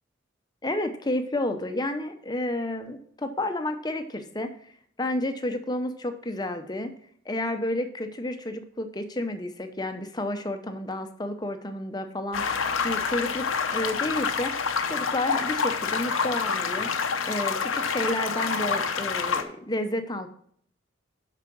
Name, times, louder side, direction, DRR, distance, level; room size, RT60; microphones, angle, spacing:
voice 1, 0.6-4.5 5.0-6.9 7.2-12.4 12.8-13.5 13.7-14.5 14.9-16.9 17.3-20.3, left 1 dB, 20° left, 7 dB, 0.8 m, -30 dB
sound 1, 12.3-19.4, left 5 dB, 90° left, 0.9 m, -27 dB
7.4 x 5.7 x 6.2 m, 0.63 s
head